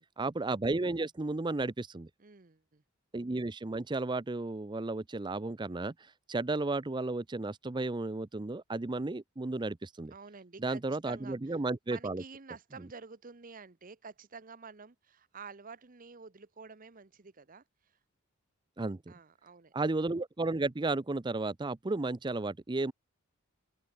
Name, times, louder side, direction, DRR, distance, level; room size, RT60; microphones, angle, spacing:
voice 1, 0.2-2.1 3.1-5.9 6.3-10.1 10.6-12.2 18.8-19.1 19.7-22.9, right 2 dB, 20° right, 0.5 m, -33 dB
voice 2, 2.2-2.8 10.1-11.6 11.9-18.0 19.1-19.7, right 5 dB, 40° right, 0.9 m, -50 dB
open air
head